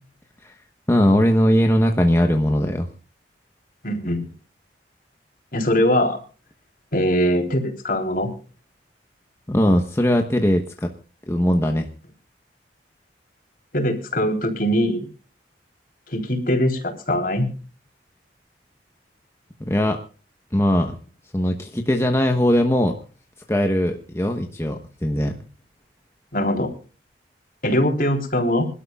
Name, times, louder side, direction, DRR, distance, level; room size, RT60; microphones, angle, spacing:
voice 1, 0.9-2.9 9.5-10.9 11.3-11.9 19.6-20.0 20.5-21.0 21.3-22.9 23.5-25.4, equal, 15° left, 4 dB, 1.1 m, -20 dB
voice 2, 3.8-4.3 5.5-6.2 6.9-8.3 13.7-15.1 16.1-17.5 26.3-26.7 27.6-28.7, equal, 50° left, 3 dB, 3.6 m, -21 dB
26.5 x 12.5 x 2.4 m, 0.36 s
head